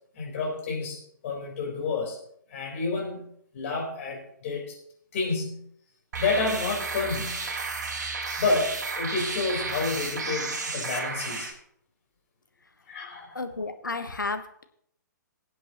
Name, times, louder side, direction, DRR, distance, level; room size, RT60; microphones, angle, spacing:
voice 1, 0.1-1.0 1.2-2.2 2.5-3.2 3.5-4.6 5.1-5.6 6.2-7.4 8.4-11.5 12.9-13.4, left 3 dB, 45° left, -1 dB, 4.4 m, -29 dB
sound 1, 6.1-11.5, right 4 dB, 60° right, 1.6 m, -32 dB
voice 2, 13.3-14.6, left 3 dB, 80° left, 9 dB, 1.1 m, -32 dB
19.5 x 8.0 x 3.1 m, 0.68 s
figure-of-eight pair, 125°, 10 cm